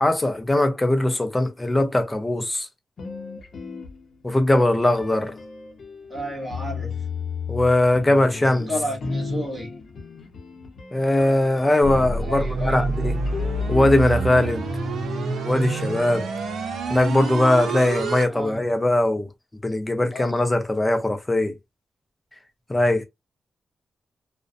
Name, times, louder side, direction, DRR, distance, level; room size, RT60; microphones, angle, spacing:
voice 1, 0.0-2.7 4.2-5.4 7.5-8.7 10.9-13.2 13.7-14.7 15.4-16.3 16.9-19.3 19.6-21.6 22.7-23.0, left 1 dB, 10° left, 0.4 m, -20 dB
sound 1, 3.0-4.4 5.0-17.2, left 3 dB, 50° left, 0.7 m, -35 dB
voice 2, 6.1-7.0 8.7-9.7 12.2-12.9 18.3-18.6 20.1-20.3, equal, 10° right, 1.1 m, -31 dB
sound 2, 11.8-18.2, right 3 dB, 80° right, 0.6 m, -28 dB
2.4 x 2.1 x 2.4 m
wide cardioid pair, 175°, 0 cm